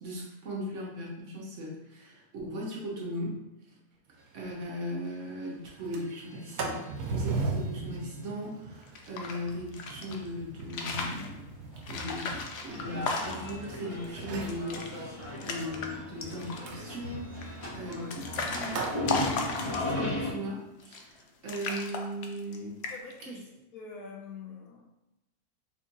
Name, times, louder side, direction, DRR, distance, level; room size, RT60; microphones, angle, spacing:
voice 1, 0.0-3.4 4.3-11.4 11.9-22.8 23.2-23.4, equal, 55° right, -3 dB, 1.0 m, -38 dB
Sliding door, 4.2-4.3 4.6-4.7 5.1-5.4 5.7-13.7 14.2-14.7 16.7-19.0, right 3 dB, 90° right, 1.1 m, -38 dB
sound 1, 8.8-10.2 10.6-11.3 11.8-13.6 14.0-14.1 14.4-14.9 15.2-15.9 16.2-16.7 17.4-20.1 20.8-21.2 21.5-22.6 22.8-23.2, left 4 dB, 85° left, 0.5 m, -35 dB
sound 2, 12.7-20.3, left 1 dB, 45° left, 1.3 m, -36 dB
voice 2, 22.9-23.5 23.7-24.8, left 5 dB, 70° left, -1 dB, 1.0 m, -44 dB
3.6 x 2.4 x 3.8 m, 0.95 s
omnidirectional pair, 1.7 m